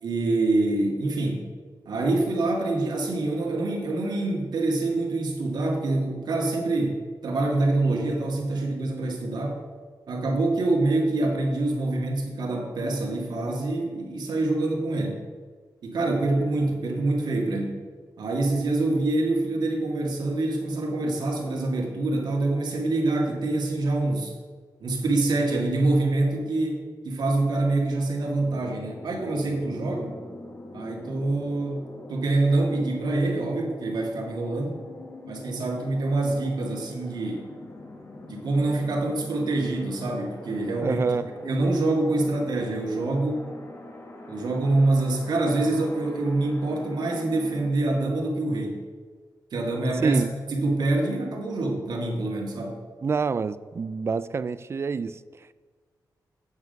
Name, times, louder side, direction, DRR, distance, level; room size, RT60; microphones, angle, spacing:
voice 1, 0.0-1.5 1.9-9.6 10.1-15.2 15.8-17.8 18.2-24.3 24.8-30.2 30.7-34.8 35.3-37.5 38.3-41.0 41.4-43.5 44.3-48.8 49.5-50.2 50.5-52.8, right 2 dB, 75° right, 1.9 m, -25 dB
sound 1, 28.3-47.7, left 2 dB, 35° left, 1.2 m, -44 dB
voice 2, 40.8-41.3 50.0-50.3 53.0-55.5, right 5 dB, 35° right, 0.3 m, -27 dB
8.2 x 7.4 x 5.3 m
wide cardioid pair, 125°, 7 cm